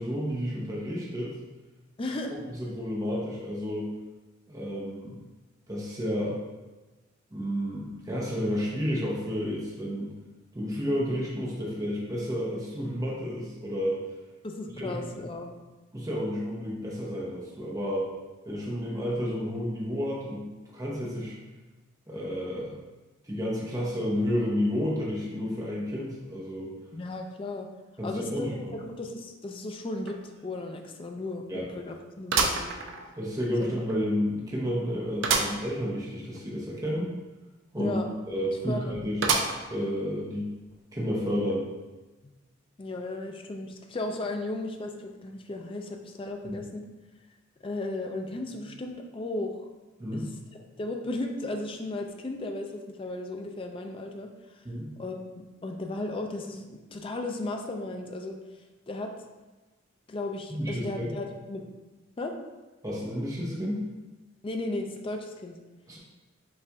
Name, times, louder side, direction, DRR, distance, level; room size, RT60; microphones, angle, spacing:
voice 1, 0.0-1.3 2.6-3.9 4.5-5.2 5.7-6.4 7.3-10.1 10.5-14.0 14.8-15.2 15.9-18.1 18.5-20.5 20.7-21.4 22.1-22.8 23.3-26.7 28.0-28.8 31.5-31.7 33.1-37.1 37.7-38.0 38.3-39.3 39.7-40.5 40.9-41.7 46.4-46.6 50.0-50.3 54.6-54.9 60.5-61.1 62.8-63.9 65.9-66.0, equal, 15° right, -5 dB, 0.7 m, -31 dB
voice 2, 2.0-2.4 14.4-15.5 26.9-27.7 28.0-31.4 31.7-32.8 33.6-33.7 37.8-38.2 38.7-39.0 42.2-42.4 42.8-46.8 47.6-49.7 50.1-50.2 50.8-54.7 55.0-59.1 60.1-61.6 62.2-62.4 64.4-65.6, left 2 dB, 25° left, 4 dB, 0.4 m, -35 dB
sound 1, 30.1-30.2 30.6-30.7 32.3-33.4 33.9-34.0 35.2-35.6 36.1-36.2 36.3-36.4 39.2-39.8 40.4-40.5 41.5-41.6, right 4 dB, 65° right, 0.5 m, -27 dB
5.5 x 2.5 x 3.4 m, 1.2 s
head